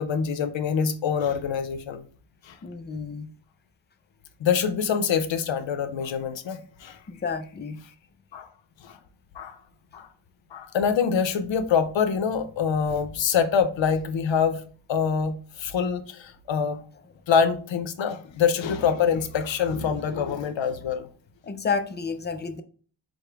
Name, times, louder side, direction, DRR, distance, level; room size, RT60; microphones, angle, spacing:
voice 1, 0.0-2.0 2.4-2.6 4.4-7.0 8.3-8.5 8.8-9.0 9.3-9.6 9.9-10.1 10.5-14.6 14.9-16.8 17.3-21.1, left 6 dB, 70° left, 0.6 m, -25 dB
voice 2, 2.6-3.3 7.1-7.8 21.4-22.6, left 5 dB, 25° left, 0.3 m, -30 dB
4.9 x 2.1 x 4.5 m
wide cardioid pair, 160°, 47 cm